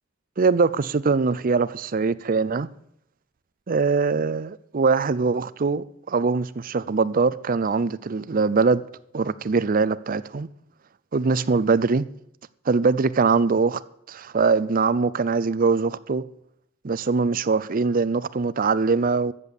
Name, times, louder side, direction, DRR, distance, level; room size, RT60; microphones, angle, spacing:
voice 1, 0.4-2.7 3.7-8.8 9.1-10.5 11.1-12.1 12.7-13.8 14.1-16.2 16.8-19.3, right 4 dB, 45° right, 0.5 m, -22 dB
13.5 x 8.4 x 7.1 m
head